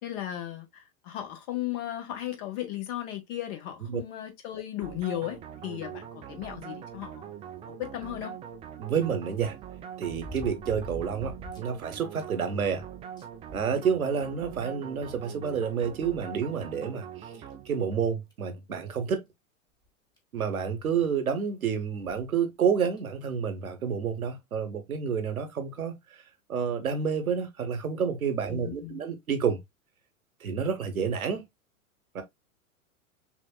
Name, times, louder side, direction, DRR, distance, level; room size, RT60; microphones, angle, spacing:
voice 1, 0.0-7.3 7.8-8.3 28.5-29.0, left 13 dB, 45° left, 1.6 m, -36 dB
sound 1, 4.8-18.1, right 9 dB, 15° right, 0.4 m, -43 dB
sound 2, 8.1-8.2 10.0-11.7 12.1-12.2 12.7-12.8 13.2-14.3 15.3-15.4 16.8-16.9 17.5-17.6 18.3-18.5 19.8-19.9 20.2-20.3 22.0-22.3 23.0-23.1, left 1 dB, 10° left, 1.3 m, -43 dB
voice 2, 8.8-9.6 10.0-12.8 13.5-17.3 17.7-19.2 20.3-25.9 26.5-29.6 30.4-31.5 32.1-32.2, right 7 dB, 80° right, 1.2 m, -29 dB
6.0 x 2.5 x 2.2 m
figure-of-eight pair, 100°, 42 cm